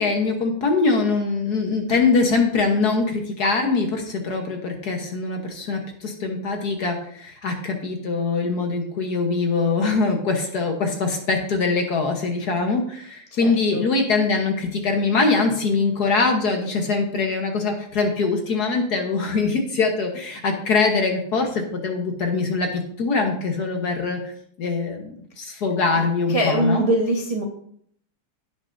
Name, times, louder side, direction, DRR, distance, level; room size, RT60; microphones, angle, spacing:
voice 1, 0.0-24.2 24.6-26.8, left 4 dB, 50° left, 3 dB, 1.5 m, -23 dB
voice 2, 13.4-13.8 25.9-26.0 26.3-27.4, right 1 dB, 25° right, -1 dB, 0.7 m, -23 dB
16.0 x 6.1 x 2.6 m, 0.64 s
omnidirectional pair, 2.4 m